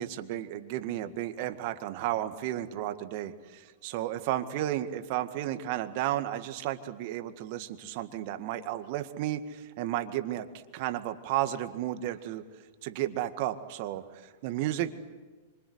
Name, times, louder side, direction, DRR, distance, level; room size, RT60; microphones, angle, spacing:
voice 1, 0.0-10.5 10.7-12.4 12.8-15.0, right 13 dB, 50° right, 9 dB, 1.9 m, -33 dB
27.0 x 25.5 x 8.1 m, 1.3 s
hypercardioid pair, 105°, 0 cm